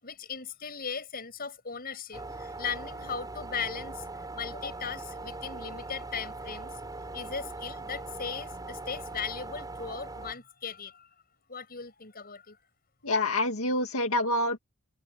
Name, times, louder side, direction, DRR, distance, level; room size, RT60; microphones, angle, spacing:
voice 1, 0.0-4.0 4.3-6.8 7.1-11.1 11.5-12.6, left 6 dB, 45° left, 6.6 m, -38 dB
sound 1, 2.1-10.3, right 2 dB, 15° right, 7.4 m, -41 dB
voice 2, 13.0-14.6, left 1 dB, 80° left, 2.0 m, -27 dB
head